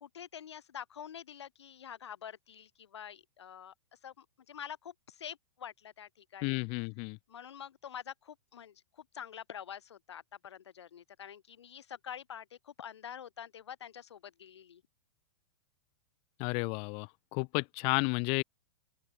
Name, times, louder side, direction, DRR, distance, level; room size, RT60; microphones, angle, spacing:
voice 1, 0.0-6.6 7.3-14.8, left 9 dB, 85° left, 1.2 m, -47 dB
voice 2, 6.4-7.2 16.4-18.4, left 35 dB, 45° left, 1.4 m, -32 dB
open air
hypercardioid pair, 125°, 14 cm